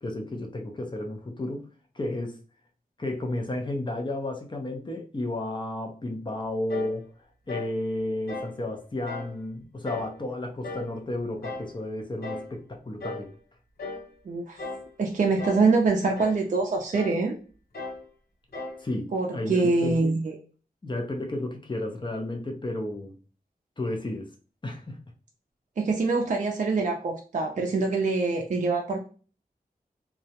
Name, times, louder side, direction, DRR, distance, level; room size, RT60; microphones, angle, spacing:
voice 1, 0.0-1.7 1.9-2.4 3.0-7.1 7.5-13.3 18.8-20.2 20.8-23.2 23.8-24.3 24.6-25.0, left 1 dB, 30° left, 2 dB, 0.6 m, -32 dB
sound 1, 6.7-7.0 7.5-7.8 8.3-8.6 9.1-9.3 9.9-10.2 10.6-10.9 11.4-11.7 12.2-12.5 13.0-13.3 13.8-14.1 14.6-14.9 15.4-15.7 16.2-16.4 16.9-17.2 17.7-18.0 18.5-18.8, left 3 dB, 80° left, 0.8 m, -36 dB
voice 2, 14.3-14.6 15.0-17.4 19.1-20.4 25.8-29.0, right 3 dB, 55° right, 1 dB, 0.4 m, -24 dB
2.3 x 2.0 x 2.8 m, 0.38 s
wide cardioid pair, 75°, 16 cm